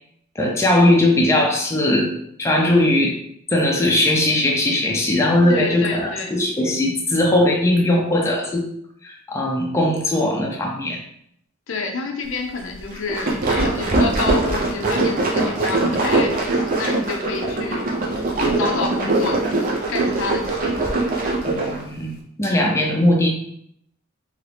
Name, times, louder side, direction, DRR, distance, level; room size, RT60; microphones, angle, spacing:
voice 1, 0.4-2.1 2.4-3.2 3.5-8.6 9.0-11.0 21.5-23.3, left 1 dB, 15° left, -1 dB, 0.5 m, -19 dB
voice 2, 5.5-6.3 11.7-17.8 18.6-19.4 19.9-20.7, left 4 dB, 70° left, 3 dB, 0.5 m, -28 dB
sound 1, 12.9-21.8, right 2 dB, 45° right, 0.6 m, -21 dB
2.8 x 2.5 x 3.3 m, 0.69 s
head